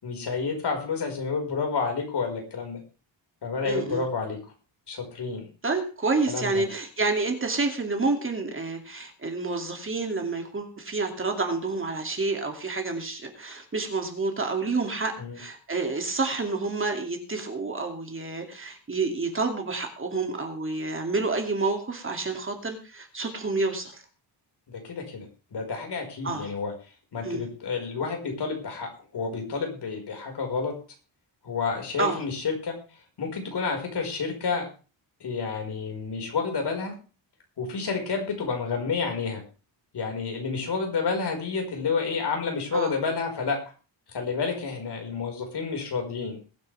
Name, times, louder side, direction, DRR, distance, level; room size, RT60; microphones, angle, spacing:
voice 1, 0.0-2.8 3.4-4.4 4.9-5.5 6.3-6.7 15.2-15.4 24.7-25.3 25.5-26.7 27.1-30.7 31.4-32.7 33.2-34.7 35.2-36.9 37.6-39.4 39.9-43.6 44.1-46.4, left 5 dB, 60° left, 2 dB, 5.0 m, -30 dB
voice 2, 3.6-4.0 5.6-24.0 26.2-26.5 27.2-27.4 32.0-32.2 42.7-42.9, right 3 dB, 25° right, 4 dB, 2.5 m, -29 dB
21.5 x 9.5 x 3.4 m, 0.35 s
wide cardioid pair, 175°, 45 cm